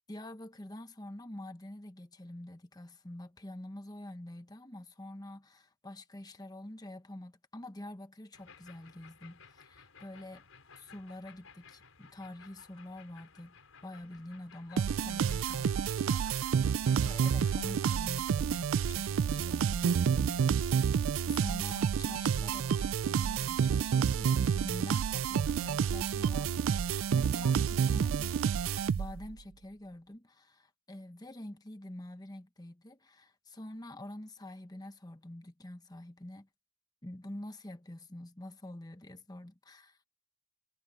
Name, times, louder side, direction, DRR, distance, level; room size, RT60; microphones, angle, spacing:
voice 1, 0.1-10.4 10.7-28.6 28.9-36.5 37.0-40.0, left 1 dB, 20° left, 1.0 m, -46 dB
sound 1, 8.3-17.9, left 5 dB, 85° left, 5.5 m, -57 dB
sound 2, 14.8-29.3, right 7 dB, 75° right, 0.4 m, -29 dB
head